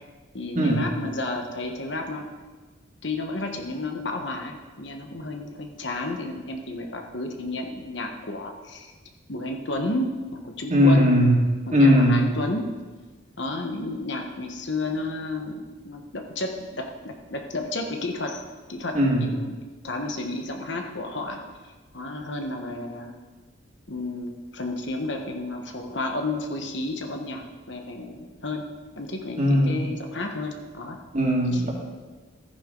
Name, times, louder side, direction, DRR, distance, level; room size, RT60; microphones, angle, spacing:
voice 1, 0.3-2.3 3.0-8.9 9.3-11.1 11.7-12.7 13.4-18.4 18.7-19.6 19.8-21.4 21.6-23.1 23.9-28.7 29.0-31.0 31.5-31.6, left 2 dB, 60° left, 3 dB, 1.3 m, -32 dB
voice 2, 10.7-11.4 11.7-12.3 18.9-19.3 29.4-29.8 31.1-31.7, equal, 40° right, -2 dB, 2.3 m, -19 dB
14.5 x 9.9 x 3.9 m, 1.3 s
head